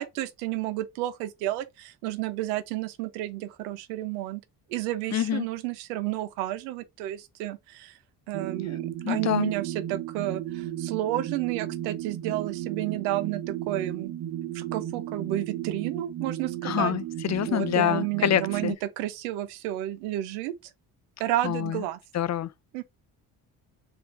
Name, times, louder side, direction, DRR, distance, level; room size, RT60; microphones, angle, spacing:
voice 1, 0.0-4.4 4.7-7.9 8.3-14.1 14.5-16.9 17.5-20.5 21.2-22.0 22.7-22.8, right 14 dB, 90° right, 0.7 m, -31 dB
voice 2, 5.1-5.5 9.0-9.5 16.6-18.7 21.4-21.8 22.1-22.5, left 11 dB, 40° left, 0.5 m, -26 dB
sound 1, 8.3-18.7, right 12 dB, 55° right, 0.8 m, -34 dB
4.3 x 2.6 x 4.2 m
hypercardioid pair, 50°, 45 cm